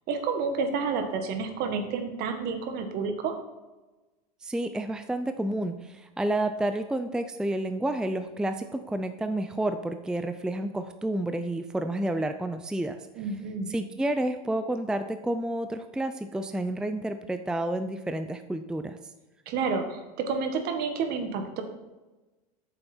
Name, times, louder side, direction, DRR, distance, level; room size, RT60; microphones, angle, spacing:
voice 1, 0.1-3.3 13.2-13.7 19.4-21.6, right 5 dB, 55° right, 6 dB, 1.6 m, -30 dB
voice 2, 4.4-13.1 13.7-19.0, right 1 dB, 5° right, 9 dB, 0.4 m, -30 dB
8.8 x 6.9 x 4.4 m, 1.1 s
supercardioid pair, 105°, 20 cm